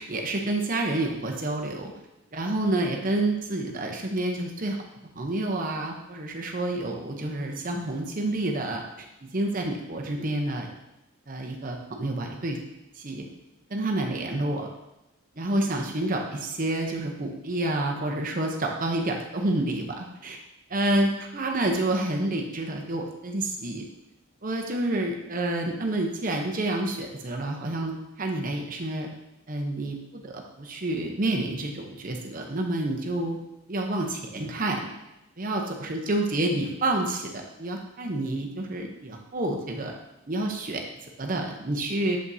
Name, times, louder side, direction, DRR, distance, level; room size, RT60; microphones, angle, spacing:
voice 1, 0.0-1.9 2.3-4.8 5.2-10.7 11.3-12.6 13.0-13.3 13.7-14.7 15.4-20.4 20.7-23.9 24.4-29.1 29.5-33.4 33.7-34.9 35.4-39.9 40.3-40.8 41.2-42.2, right 1 dB, 35° right, 1 dB, 0.7 m, -29 dB
7.2 x 5.1 x 2.7 m, 0.94 s
head